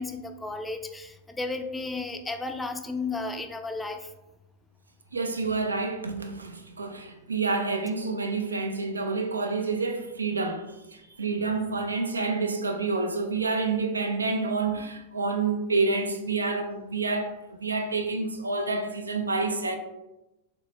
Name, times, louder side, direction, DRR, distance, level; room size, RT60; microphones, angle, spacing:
voice 1, 0.0-4.1, left 3 dB, 10° left, 0.3 m, -33 dB
voice 2, 5.1-19.8, right 3 dB, 75° right, 0.3 m, -28 dB
3.9 x 2.1 x 3.0 m
figure-of-eight pair, 90°, 0 cm